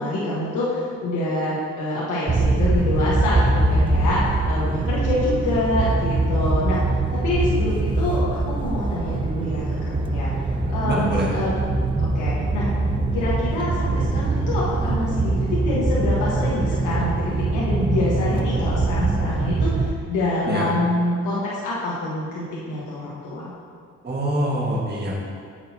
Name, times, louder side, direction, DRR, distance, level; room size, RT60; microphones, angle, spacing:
voice 1, 0.0-11.6 12.0-12.7 13.1-23.5, left 2 dB, 80° left, -7 dB, 1.4 m, -26 dB
sound 1, 2.3-19.9, right 2 dB, 15° right, 0.4 m, -23 dB
voice 2, 10.9-11.3 20.5-20.7 24.0-25.1, right 1 dB, 35° right, -3 dB, 1.7 m, -24 dB
8.5 x 6.6 x 2.8 m, 2.1 s
cardioid pair, 90°, 30 cm